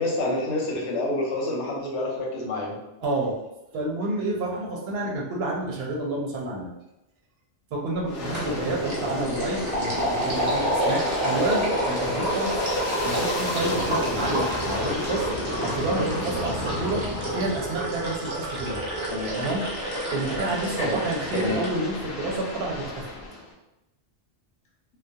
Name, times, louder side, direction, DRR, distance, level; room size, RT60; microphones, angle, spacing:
voice 1, 0.0-2.8 19.1-19.4 20.8-21.0 21.4-21.6, left 2 dB, 85° left, -1 dB, 0.9 m, -28 dB
voice 2, 3.0-3.4 3.7-6.7 7.7-12.7 13.0-15.3 15.6-17.0 17.3-18.8 19.4-19.6 20.1-23.1, right 2 dB, 65° right, -1 dB, 0.7 m, -29 dB
Aircraft, 8.0-18.1 18.6-23.5, left 2 dB, 60° left, 0.5 m, -33 dB
sound 1, 8.3-8.6 8.9-21.7, right 1 dB, 30° right, 0.6 m, -29 dB
2.3 x 2.0 x 2.6 m, 0.94 s
omnidirectional pair, 1.2 m